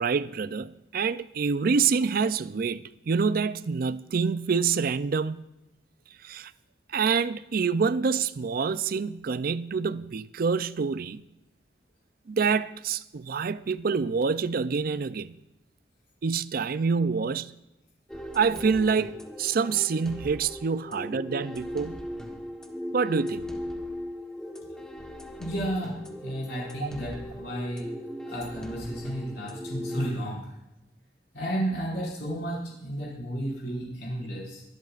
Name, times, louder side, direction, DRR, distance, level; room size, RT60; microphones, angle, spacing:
voice 1, 0.0-5.5 6.2-6.5 6.9-11.3 12.3-15.4 16.2-17.5 18.3-22.1 22.9-23.5 26.8-26.9, right 5 dB, 50° right, 0.4 m, -27 dB
sound 1, 18.1-30.1, equal, 5° left, 1.2 m, -38 dB
voice 2, 25.4-27.8 28.3-30.4 31.3-34.6, right 1 dB, 65° left, 5.2 m, -32 dB
23.5 x 12.0 x 2.5 m
head